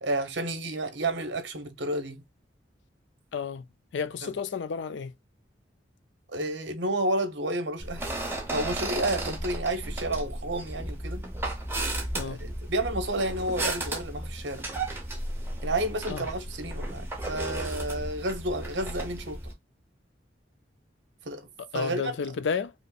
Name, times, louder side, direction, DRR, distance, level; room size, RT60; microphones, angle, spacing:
voice 1, 0.0-2.2 4.2-4.3 6.3-8.1 8.5-11.2 12.2-14.7 15.6-19.4 21.2-21.5 21.7-22.1, right 1 dB, 75° right, 1.0 m, -31 dB
voice 2, 3.3-3.7 3.9-5.1 12.1-12.4 16.1-16.2 21.6-22.7, left 5 dB, 75° left, 0.4 m, -31 dB
sound 1, 7.8-19.5, right 1 dB, 10° right, 0.8 m, -34 dB
5.1 x 2.0 x 2.4 m
head